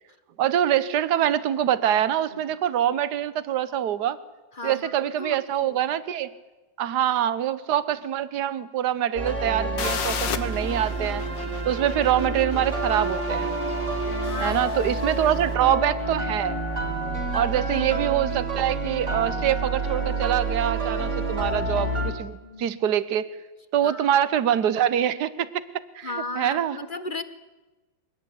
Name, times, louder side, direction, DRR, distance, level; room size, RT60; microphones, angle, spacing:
voice 1, 0.4-4.2 4.6-6.3 6.8-11.2 11.6-13.6 14.4-16.6 17.3-23.3 23.7-25.6 25.9-26.8, right 10 dB, 65° right, 15 dB, 1.6 m, -24 dB
voice 2, 4.5-5.9 14.2-15.2 17.7-18.1 22.4-22.8 23.8-24.2 26.0-27.2, left 3 dB, 30° left, 11 dB, 1.2 m, -36 dB
sound 1, 9.2-22.1, right 2 dB, 40° right, 3.5 m, -28 dB
sound 2, 9.8-15.4, left 7 dB, 85° left, 2.0 m, -36 dB
23.5 x 18.0 x 9.9 m, 1.1 s
omnidirectional pair, 1.9 m